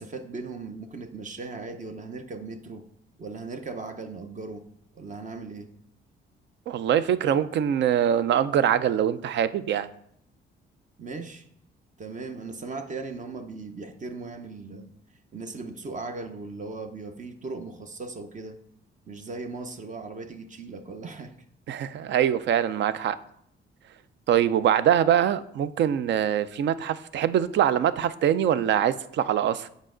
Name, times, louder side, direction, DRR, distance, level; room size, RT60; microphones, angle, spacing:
voice 1, 0.0-2.9 3.2-4.7 4.9-5.7 11.0-11.4 12.0-14.9 15.3-18.6 19.1-21.4, right 3 dB, 40° right, 0.8 m, -38 dB
voice 2, 6.7-9.9 21.7-23.2 24.3-29.7, right 10 dB, 65° right, 0.5 m, -23 dB
7.4 x 5.1 x 3.8 m
cardioid pair, 90°, 20 cm